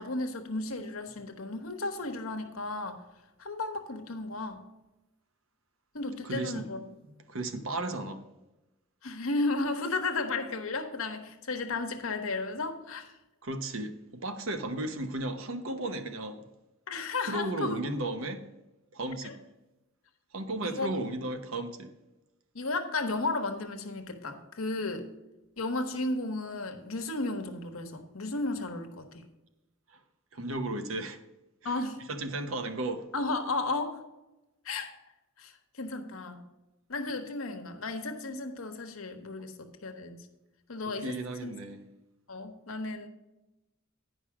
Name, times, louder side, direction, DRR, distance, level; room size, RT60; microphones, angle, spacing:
voice 1, 0.0-3.0 3.4-4.6 5.9-6.8 9.0-13.1 16.9-17.8 19.2-19.3 20.6-20.9 22.5-25.1 25.6-29.2 31.6-32.0 33.1-34.0 34.6-34.9 35.4-36.4 36.9-40.2 40.7-41.1 41.4-41.5 42.3-43.1, left 3 dB, 80° left, 1.1 m, -34 dB
voice 2, 6.2-6.7 7.3-8.2 13.4-16.4 17.3-18.4 18.9-19.4 20.3-21.9 29.9-30.0 30.3-31.2 31.6-31.8 32.1-33.1 40.9-41.8, right 2 dB, 70° right, 0.9 m, -34 dB
9.8 x 5.4 x 5.9 m
head